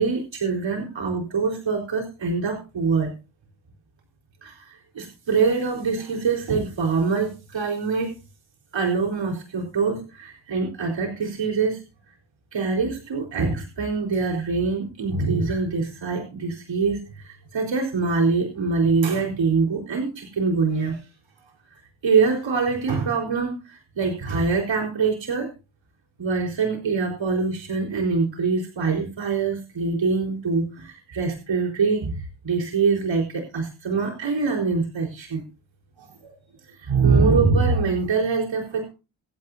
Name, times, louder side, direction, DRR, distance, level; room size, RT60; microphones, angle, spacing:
voice 1, 0.0-3.1 4.4-8.1 8.7-11.8 12.5-21.0 22.0-25.5 26.2-35.4 36.0-36.3 36.8-38.9, right 4 dB, 65° right, 1 dB, 4.3 m, -24 dB
26.5 x 9.0 x 2.7 m, 0.30 s
supercardioid pair, 50°, 48 cm